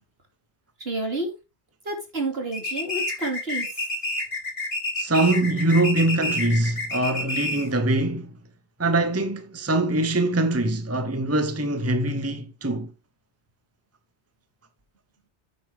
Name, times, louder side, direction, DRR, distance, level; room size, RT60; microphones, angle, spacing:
voice 1, 0.8-1.3 1.8-3.9, right 2 dB, 60° right, 3.3 m, -29 dB
sound 1, 2.5-7.8, left 2 dB, 45° left, 2.4 m, -29 dB
voice 2, 5.0-8.3 8.8-12.9, right 2 dB, 15° right, 1.0 m, -23 dB
9.1 x 8.6 x 3.6 m
omnidirectional pair, 1.2 m